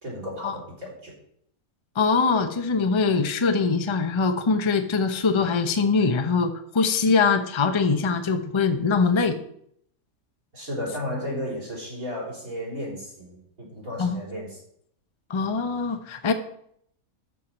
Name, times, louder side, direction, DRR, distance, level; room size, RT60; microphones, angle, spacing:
voice 1, 0.0-1.1 10.5-14.6, left 1 dB, 70° right, -1 dB, 4.3 m, -34 dB
voice 2, 2.0-9.4 14.0-14.2 15.3-16.3, left 4 dB, 25° left, 8 dB, 0.6 m, -23 dB
13.0 x 4.7 x 5.9 m, 0.68 s
omnidirectional pair, 1.5 m